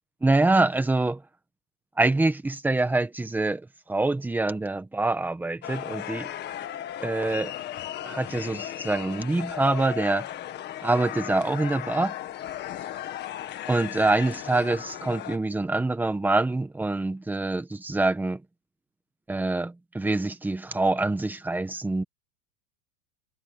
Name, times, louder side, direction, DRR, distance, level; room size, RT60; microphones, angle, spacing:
voice 1, 0.2-1.2 2.0-3.6 3.9-6.3 7.0-7.5 8.0-10.2 10.8-12.1 13.7-18.4 19.3-22.0, right 2 dB, 5° right, 1.4 m, -25 dB
sound 1, 5.6-15.4, left 12 dB, 25° left, 1.7 m, -36 dB
supercardioid pair, 165°, 42 cm